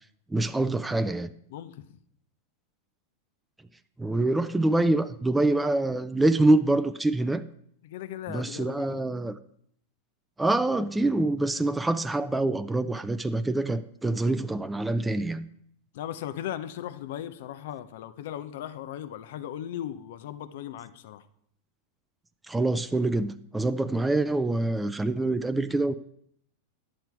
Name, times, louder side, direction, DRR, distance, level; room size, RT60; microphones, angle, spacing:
voice 1, 0.3-1.3 4.0-7.4 8.3-9.4 10.4-15.5 22.5-25.9, right 2 dB, 10° right, 9 dB, 0.5 m, -25 dB
voice 2, 1.5-1.8 7.8-9.0 15.9-21.2, left 11 dB, 65° left, 13 dB, 0.7 m, -37 dB
10.0 x 7.7 x 4.6 m, 0.69 s
hypercardioid pair, 100°, 0 cm